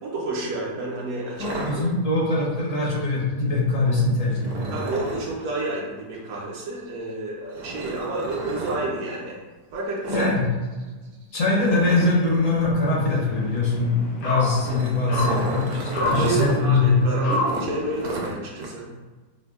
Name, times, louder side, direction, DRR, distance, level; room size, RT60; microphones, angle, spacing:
voice 1, 0.0-1.5 1.8-1.9 4.7-9.4 9.7-10.3 16.0-18.9, right 2 dB, 65° right, -4 dB, 0.9 m, -30 dB
voice 2, 1.4-4.7 10.1-10.5 11.3-16.9, left 3 dB, 60° left, -4 dB, 1.0 m, -22 dB
sound 1, 1.4-2.4 4.4-5.3 7.5-8.8 10.0-10.4 10.6-10.8 11.1-11.2 11.6-12.7 14.3-16.5 16.9-17.0 17.5-18.7, right 2 dB, 85° right, 1.2 m, -33 dB
sound 2, 12.8-18.1, left 1 dB, 75° left, 1.5 m, -30 dB
5.0 x 2.0 x 2.3 m, 1.3 s
omnidirectional pair, 1.8 m